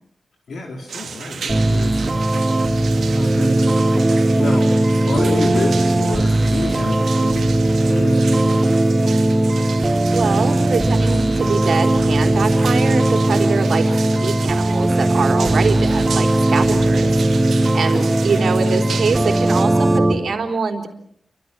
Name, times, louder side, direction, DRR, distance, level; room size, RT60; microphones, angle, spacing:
voice 1, 0.5-2.0 2.3-8.6 17.6-18.1, left 3 dB, 80° left, 0 dB, 4.4 m, -30 dB
sound 1, 0.9-19.6, right 6 dB, 90° right, 2.7 m, -34 dB
sound 2, 1.5-20.1, right 1 dB, 20° right, 3.8 m, -18 dB
voice 2, 9.8-17.1 17.7-20.9, right 5 dB, 70° right, 4 dB, 3.9 m, -24 dB
29.5 x 25.0 x 6.2 m, 0.69 s
wide cardioid pair, 110°, 0 cm